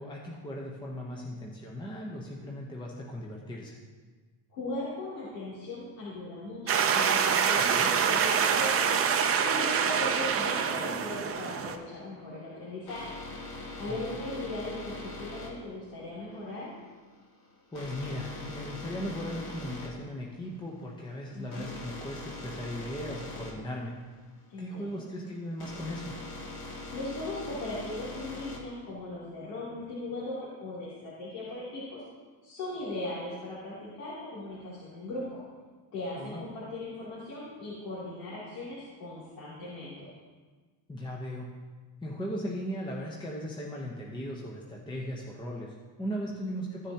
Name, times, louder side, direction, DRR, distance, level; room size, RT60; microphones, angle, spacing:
voice 1, 0.0-3.8 7.5-7.9 13.9-14.0 17.7-23.9 24.6-26.2 36.2-36.4 40.9-41.5 42.0-46.9, equal, 10° left, -2 dB, 0.9 m, -38 dB
voice 2, 4.5-13.1 13.8-16.7 21.3-21.7 24.5-25.0 26.9-32.0 32.4-35.4 35.9-40.1 46.2-46.5, left 2 dB, 75° left, -9 dB, 3.1 m, -38 dB
sound 1, 6.7-11.7, right 7 dB, 30° right, 0.6 m, -26 dB
sound 2, 12.2-28.8, left 2 dB, 50° left, 2.1 m, -42 dB
14.5 x 6.8 x 2.9 m, 1.4 s
cardioid pair, 130°, 47 cm